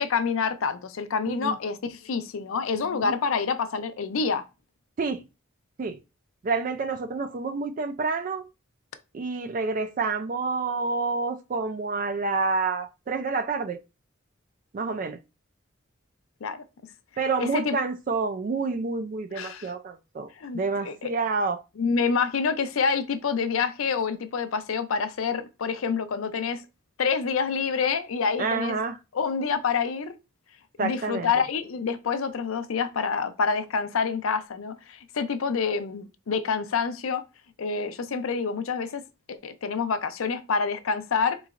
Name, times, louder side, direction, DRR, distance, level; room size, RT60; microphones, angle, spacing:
voice 1, 0.0-4.4 16.4-16.6 17.4-17.8 19.3-19.7 20.4-21.1 21.8-26.6 27.0-28.8 29.1-30.1 30.8-37.2 37.6-39.0 39.3-41.4, left 5 dB, 85° left, 0.5 m, -27 dB
voice 2, 1.3-1.6 2.8-3.1 5.0-5.2 5.8-6.0 6.4-8.5 9.1-13.8 14.7-15.2 17.2-20.3 20.5-21.6 28.4-29.0 30.8-31.3, right 4 dB, 40° right, 0.3 m, -28 dB
3.8 x 3.1 x 2.4 m
head